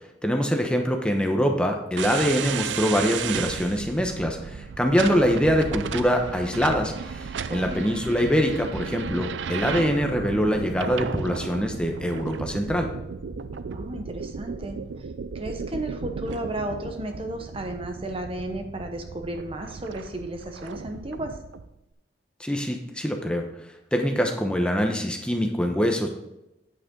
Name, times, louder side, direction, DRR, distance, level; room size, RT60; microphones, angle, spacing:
voice 1, 0.2-12.9 22.4-23.4 23.9-26.1, equal, 5° left, 3 dB, 0.9 m, -24 dB
sound 1, 2.0-21.7, right 6 dB, 85° right, 0.4 m, -34 dB
voice 2, 7.5-7.9 13.7-14.8 15.3-21.4, right 1 dB, 30° right, 5 dB, 0.9 m, -33 dB
8.8 x 8.2 x 3.8 m, 0.91 s
head